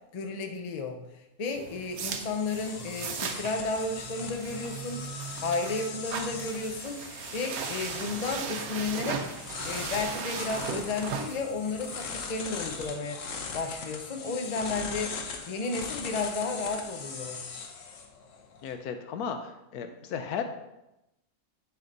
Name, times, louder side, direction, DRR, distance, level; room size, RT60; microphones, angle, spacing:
voice 1, 0.1-1.0 1.4-5.0 5.4-7.0 7.3-9.3 9.7-15.1 15.4-17.4, left 3 dB, 45° left, 4 dB, 0.5 m, -33 dB
sound 1, 1.5-18.7, left 5 dB, 65° left, 1.1 m, -40 dB
sound 2, 1.5-12.9, right 6 dB, 75° right, 1.1 m, -38 dB
voice 2, 18.6-20.4, left 7 dB, 85° left, 7 dB, 1.2 m, -35 dB
9.6 x 3.4 x 3.9 m, 0.92 s
omnidirectional pair, 1.6 m